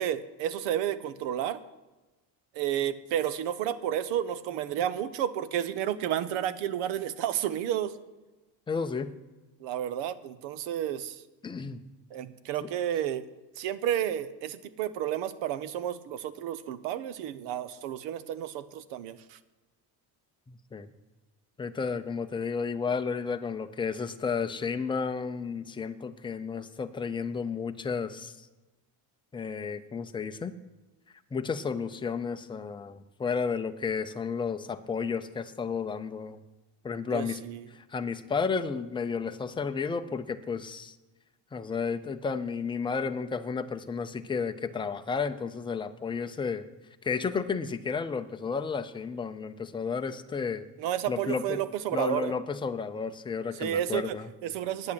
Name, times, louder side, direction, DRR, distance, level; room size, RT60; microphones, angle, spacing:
voice 1, 0.0-1.6 2.5-7.9 9.6-11.2 12.1-13.2 13.6-19.4 37.1-37.7 50.8-52.3 53.6-54.9, right 11 dB, 85° right, 15 dB, 0.9 m, -31 dB
voice 2, 8.7-9.2 11.4-11.8 12.6-12.7 20.5-20.9 21.6-28.5 29.3-30.5 31.3-36.4 36.8-37.4 37.7-41.0 41.5-46.7 47.0-50.7 51.1-51.6 51.9-54.3, left 5 dB, 10° left, 7 dB, 0.5 m, -32 dB
9.7 x 8.4 x 8.6 m, 1.1 s
cardioid pair, 150°, 43 cm